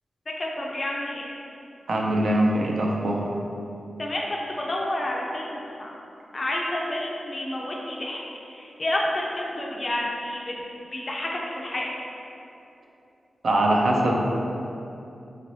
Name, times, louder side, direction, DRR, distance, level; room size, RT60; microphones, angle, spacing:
voice 1, 0.4-1.3 4.0-5.9 6.3-8.2 8.6-10.4 10.9-11.9, left 1 dB, 35° left, -2 dB, 0.3 m, -29 dB
voice 2, 1.9-3.3 13.4-14.1, right 1 dB, 60° right, -1 dB, 0.4 m, -22 dB
2.9 x 2.6 x 3.0 m, 2.8 s
wide cardioid pair, 130°, 0 cm